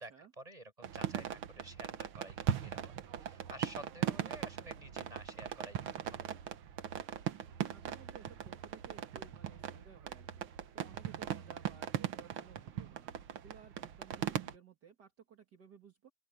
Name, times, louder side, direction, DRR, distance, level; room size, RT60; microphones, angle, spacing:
voice 1, 0.0-2.9 3.2-6.3, right 1 dB, 15° right, 6.8 m, -51 dB
sound 1, 0.8-14.6, right 10 dB, 80° right, 2.0 m, -39 dB
voice 2, 7.7-16.1, right 7 dB, 55° right, 2.5 m, -58 dB
open air
omnidirectional pair, 2.3 m